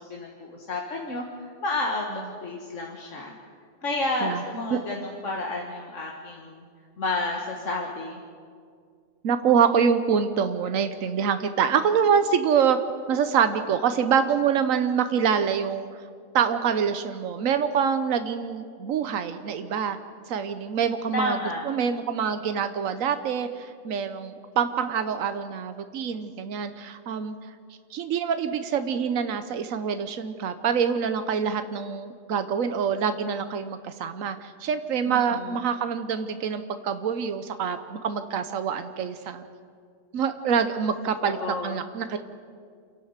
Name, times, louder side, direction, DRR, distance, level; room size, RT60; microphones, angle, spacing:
voice 1, 0.0-3.3 3.8-6.6 7.0-8.2 21.1-21.7 35.1-35.5 41.2-41.9, left 2 dB, 70° left, 0 dB, 2.0 m, -31 dB
voice 2, 9.2-12.8 13.1-15.9 16.3-20.0 20.3-27.4 27.9-39.5 40.1-42.2, right 7 dB, 85° right, 10 dB, 1.3 m, -25 dB
28.0 x 11.5 x 8.1 m, 2.1 s
omnidirectional pair, 1.3 m